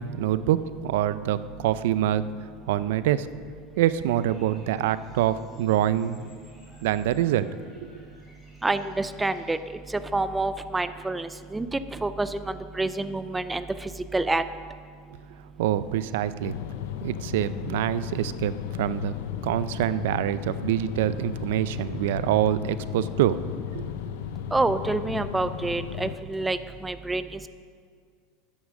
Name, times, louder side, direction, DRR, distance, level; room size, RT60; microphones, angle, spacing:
voice 1, 0.0-2.2 2.7-3.3 3.8-6.3 6.8-8.0 15.6-16.5 17.0-19.1 19.4-23.4 23.7-23.9, right 12 dB, 80° right, 15 dB, 0.4 m, -25 dB
Bird vocalization bird call bird song, 3.7-9.6, equal, 10° left, 3.6 m, -57 dB
voice 2, 8.6-14.4 24.5-27.5, right 2 dB, 10° right, 12 dB, 0.3 m, -28 dB
sound 1, 15.7-26.8, right 9 dB, 60° right, 2.8 m, -49 dB
sound 2, 16.4-26.2, left 11 dB, 80° left, 0.5 m, -35 dB
11.0 x 9.4 x 6.4 m, 2.1 s
supercardioid pair, 160°, 0 cm